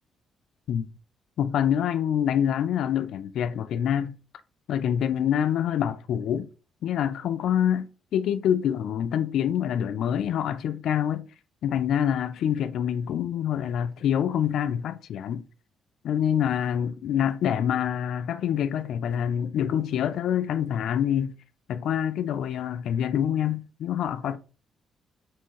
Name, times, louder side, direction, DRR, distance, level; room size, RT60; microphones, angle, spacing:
voice 1, 1.4-4.1 4.7-6.5 6.8-11.2 11.6-15.4 16.0-21.3 21.7-24.4, left 9 dB, 75° left, 0.4 m, -26 dB
4.3 x 3.6 x 3.1 m
cardioid pair, 90°, 0 cm